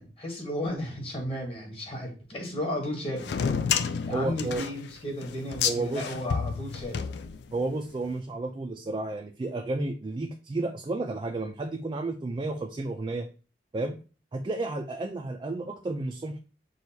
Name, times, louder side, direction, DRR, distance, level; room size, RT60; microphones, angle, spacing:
voice 1, 0.0-3.3 4.0-7.0, left 1 dB, 30° left, 0 dB, 1.2 m, -34 dB
sound 1, 3.2-7.8, left 7 dB, 65° left, 0.3 m, -30 dB
voice 2, 4.1-4.7 5.6-6.0 7.5-13.3 13.7-14.0 14.3-16.4, right 2 dB, 25° right, 4 dB, 0.3 m, -32 dB
6.2 x 2.3 x 2.7 m, 0.35 s
head